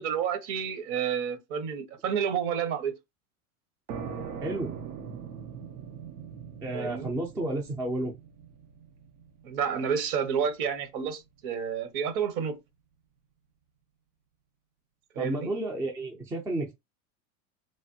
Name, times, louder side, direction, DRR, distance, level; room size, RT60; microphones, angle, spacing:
voice 1, 0.0-2.9 6.7-7.1 9.4-12.6 15.2-15.5, right 7 dB, 55° right, 0.9 m, -30 dB
sound 1, 3.9-11.3, right 7 dB, 90° right, 0.7 m, -42 dB
voice 2, 4.4-4.8 6.6-8.1 15.2-16.7, right 1 dB, 5° right, 0.3 m, -31 dB
3.2 x 2.2 x 2.6 m
supercardioid pair, 120°, 44 cm